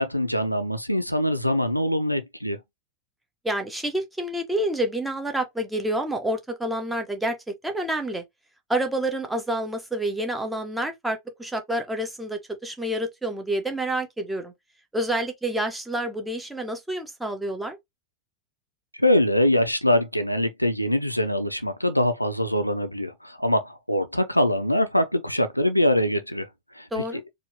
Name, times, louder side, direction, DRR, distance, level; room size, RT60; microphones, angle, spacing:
voice 1, 0.0-2.6 19.0-26.5 26.8-27.0, left 1 dB, 90° left, 0.5 m, -23 dB
voice 2, 3.4-7.4 7.6-8.2 8.7-14.5 14.9-17.8 26.9-27.2, right 1 dB, 5° right, 1.1 m, -28 dB
4.4 x 2.7 x 2.9 m
figure-of-eight pair, 90°, 0 cm